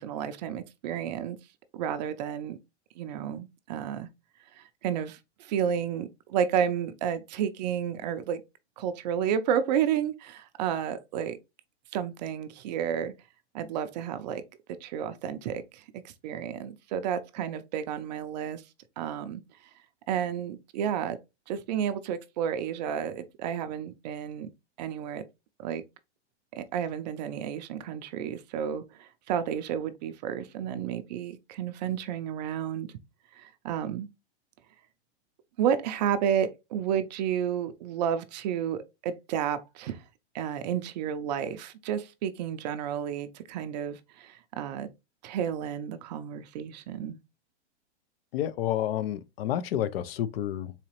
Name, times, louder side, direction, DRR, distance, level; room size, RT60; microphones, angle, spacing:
voice 1, 0.0-1.4 1.7-2.6 3.0-4.1 4.5-8.4 8.8-11.4 11.9-13.1 13.5-14.4 14.8-18.6 19.0-19.4 20.1-21.2 21.5-24.5 24.8-25.2 25.6-25.8 26.5-32.9 33.3-34.1 35.6-40.0 40.3-44.9 45.2-47.2, right 9 dB, 40° right, 0.4 m, -31 dB
voice 2, 48.3-50.7, left 11 dB, 60° left, 0.5 m, -30 dB
4.0 x 2.9 x 2.8 m
hypercardioid pair, 135°, 34 cm